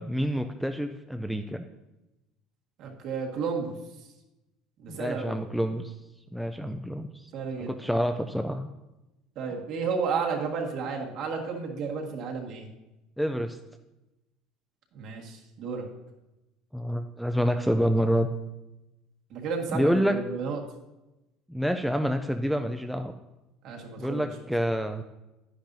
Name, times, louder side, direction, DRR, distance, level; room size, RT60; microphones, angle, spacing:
voice 1, 0.0-1.7 4.9-5.9 6.3-7.3 7.6-8.7 13.2-13.6 16.7-18.3 19.7-20.2 21.5-23.1 24.0-25.0, equal, ahead, 7 dB, 0.4 m, -27 dB
voice 2, 2.8-3.7 4.8-5.4 7.3-7.7 9.3-12.7 14.9-15.8 19.3-20.6 23.6-24.2, right 5 dB, 50° right, 1 dB, 1.6 m, -32 dB
10.5 x 10.0 x 2.7 m, 0.99 s
cardioid pair, 155°, 0 cm